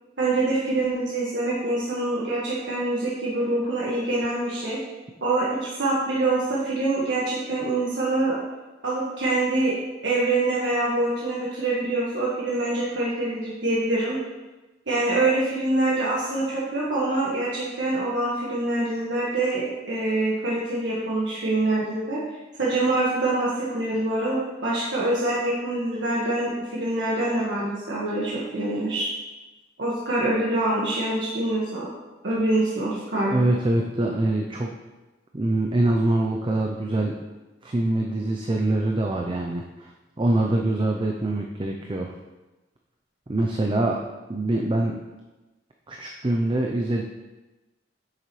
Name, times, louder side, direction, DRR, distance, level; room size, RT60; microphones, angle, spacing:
voice 1, 0.2-4.8 5.2-8.4 8.8-9.7 10.0-14.2 14.9-22.2 22.6-29.1 29.8-31.9 32.2-33.3, right 2 dB, 90° right, -7 dB, 1.6 m, -25 dB
voice 2, 33.3-34.7 35.3-37.2 37.6-39.9 40.2-42.1 43.3-44.0 44.3-45.0 45.9-47.0, right 2 dB, 30° right, 1 dB, 0.5 m, -24 dB
8.8 x 7.0 x 3.2 m, 1.1 s
head